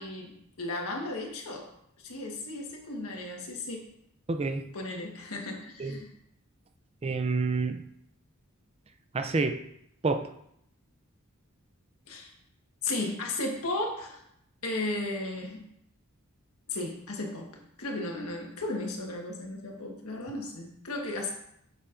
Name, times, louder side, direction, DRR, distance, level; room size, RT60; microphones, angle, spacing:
voice 1, 0.0-1.7 2.0-3.8 4.7-6.1 12.1-12.3 12.8-14.2 14.6-15.6 16.7-17.5 17.8-21.3, left 2 dB, 90° left, 1 dB, 1.4 m, -35 dB
voice 2, 4.3-4.7 5.8-6.0 7.0-7.8 9.1-9.6 10.0-10.3, right 3 dB, 30° right, 7 dB, 0.4 m, -28 dB
7.1 x 6.8 x 2.5 m, 0.74 s
head